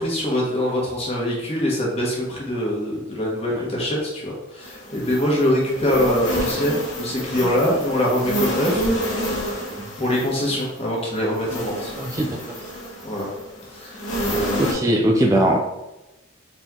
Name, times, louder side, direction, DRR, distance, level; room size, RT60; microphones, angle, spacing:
voice 1, 0.0-8.9 10.0-11.9 13.0-13.3 13.7-14.0 14.3-14.8, left 1 dB, 30° left, -3 dB, 1.2 m, -23 dB
sound 1, 4.6-14.7, equal, 65° left, 1.4 m, -28 dB
voice 2, 12.0-12.3 14.6-15.6, right 1 dB, 15° right, 0 dB, 0.3 m, -20 dB
4.1 x 3.0 x 3.7 m, 1.0 s
head